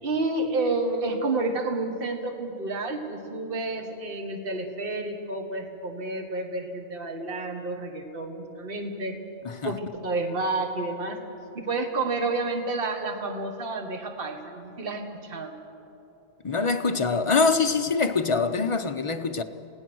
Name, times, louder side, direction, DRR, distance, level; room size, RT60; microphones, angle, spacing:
voice 1, 0.0-9.1 9.6-11.2 11.5-15.5, right 2 dB, 45° right, 1.6 m, -30 dB
voice 2, 16.4-19.4, left 4 dB, 35° left, 0.6 m, -24 dB
27.5 x 17.0 x 6.2 m
omnidirectional pair, 1.3 m